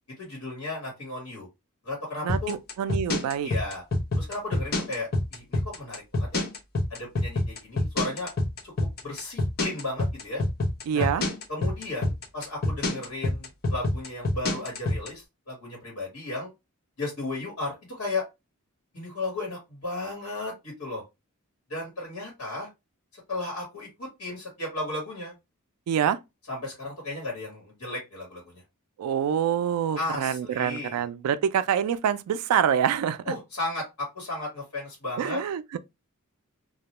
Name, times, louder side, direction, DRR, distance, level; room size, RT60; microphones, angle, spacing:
voice 1, 0.2-1.5 1.8-2.6 3.4-3.8 4.1-6.4 6.9-8.3 8.6-8.7 9.0-10.4 10.9-11.1 11.5-16.5 17.0-18.2 18.9-21.0 21.7-22.7 23.1-25.3 26.5-28.6 29.9-31.0 33.2-35.4, left 2 dB, 75° left, 1.2 m, -34 dB
voice 2, 2.2-3.5 10.9-11.3 25.9-26.2 29.0-33.3 35.2-35.8, right 8 dB, 90° right, 0.3 m, -26 dB
sound 1, 2.3-15.1, left 2 dB, 45° left, 0.6 m, -26 dB
2.3 x 2.1 x 2.8 m
head